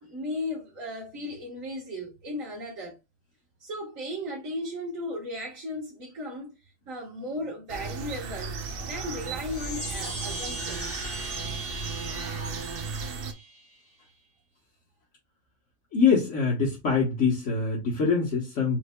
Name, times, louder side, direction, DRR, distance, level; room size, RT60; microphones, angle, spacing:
voice 1, 0.0-3.0 3.6-6.5 6.9-11.0, left 1 dB, 80° right, 1.8 m, -36 dB
sound 1, 7.7-13.3, right 4 dB, 55° right, 0.8 m, -35 dB
Chime, 9.2-13.9, right 1 dB, 10° left, 2.1 m, -39 dB
voice 2, 15.9-18.8, left 5 dB, 65° left, 1.5 m, -24 dB
4.5 x 4.2 x 2.2 m
omnidirectional pair, 1.4 m